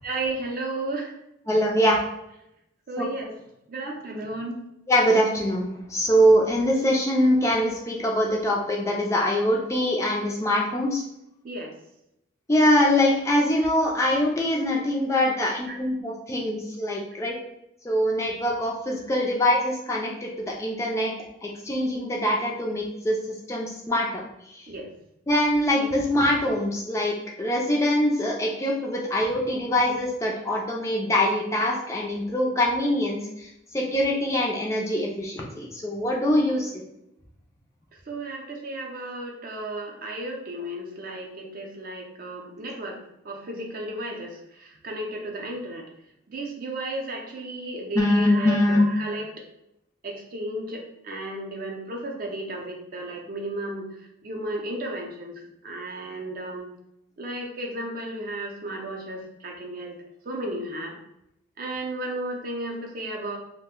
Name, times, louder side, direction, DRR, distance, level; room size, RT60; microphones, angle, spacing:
voice 1, 0.0-1.1 2.9-3.3 3.7-4.6 11.4-11.7 15.7-15.8 24.7-24.9 38.1-43.0 43.2-45.8 46.3-49.3 50.0-53.9 54.2-55.3 55.6-56.7 57.2-60.0 60.3-61.0 61.6-63.4, right 1 dB, 45° right, 1 dB, 0.5 m, -33 dB
voice 2, 1.5-2.0 3.0-3.1 4.9-11.0 12.5-17.4 17.8-21.1 21.4-24.2 24.5-24.7 25.3-33.5 33.7-36.7 47.9-48.9, left 1 dB, 15° left, -2 dB, 0.3 m, -23 dB
2.5 x 2.1 x 3.5 m, 0.83 s
head